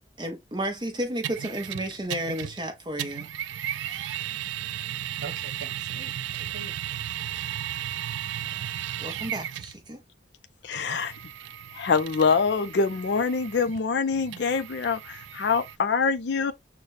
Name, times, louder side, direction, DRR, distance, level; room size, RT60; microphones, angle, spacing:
voice 1, 0.2-3.3 8.4-10.0, right 1 dB, 25° right, 0.7 m, -33 dB
sound 1, 1.2-2.7 3.0-9.8 10.7-15.8, right 11 dB, 90° right, 0.3 m, -35 dB
voice 2, 5.2-7.0 7.3-7.6, right 4 dB, 75° right, 1.0 m, -43 dB
voice 3, 10.6-11.1 11.7-16.5, left 5 dB, 70° left, 0.5 m, -25 dB
6.4 x 2.2 x 2.5 m
head